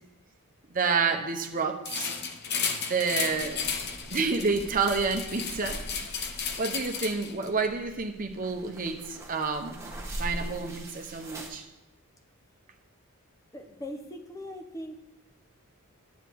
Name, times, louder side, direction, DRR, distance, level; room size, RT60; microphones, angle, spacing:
voice 1, 0.7-2.1 2.9-3.6 4.1-5.8 6.6-9.8 10.2-11.6, right 4 dB, 40° right, 4 dB, 1.0 m, -29 dB
sound 1, 1.8-7.5, left 6 dB, 50° left, 0.9 m, -34 dB
sound 2, 3.3-11.5, right 1 dB, 15° right, 1.4 m, -42 dB
voice 2, 13.5-14.9, left 1 dB, 15° left, 4 dB, 0.9 m, -40 dB
9.9 x 8.2 x 4.7 m, 0.98 s
head